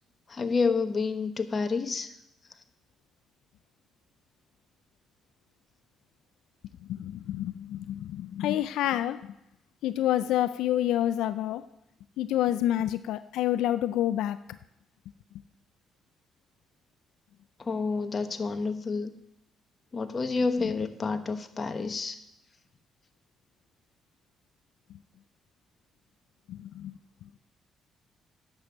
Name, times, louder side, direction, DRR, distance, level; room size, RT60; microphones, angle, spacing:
voice 1, 0.3-2.1 17.6-19.1 19.9-22.2, left 4 dB, 35° left, 9 dB, 1.1 m, -29 dB
voice 2, 6.9-9.3 9.8-11.7 12.2-14.4 26.5-26.9, left 12 dB, 90° left, 13 dB, 0.4 m, -28 dB
10.0 x 6.8 x 7.1 m, 0.84 s
cardioid pair, 90°, 0 cm